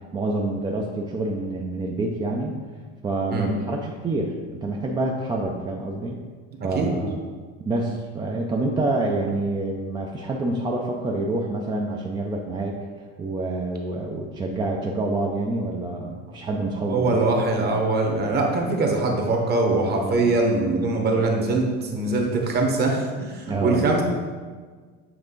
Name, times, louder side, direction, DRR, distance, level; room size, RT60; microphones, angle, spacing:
voice 1, 0.1-2.5 3.0-6.2 6.6-7.2 7.6-12.8 13.2-17.4 20.0-20.3 23.5-23.9, right 2 dB, 15° right, 0 dB, 0.4 m, -27 dB
voice 2, 16.9-24.0, right 3 dB, 30° right, 1 dB, 1.1 m, -22 dB
7.7 x 3.5 x 3.8 m, 1.5 s
supercardioid pair, 135°, 31 cm